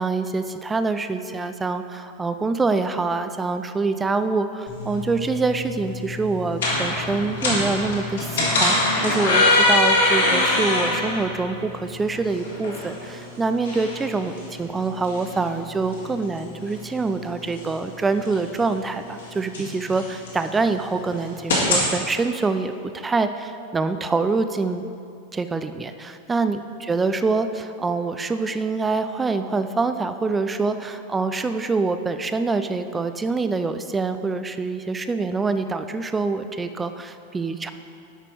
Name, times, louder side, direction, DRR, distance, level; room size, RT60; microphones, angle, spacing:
voice 1, 0.0-24.8 25.3-37.7, right 3 dB, 15° right, 10 dB, 0.4 m, -25 dB
sound 1, 4.7-21.9, left 2 dB, 60° left, 2.0 m, -25 dB
9.1 x 6.0 x 4.7 m, 2.6 s
figure-of-eight pair, 90°, 0 cm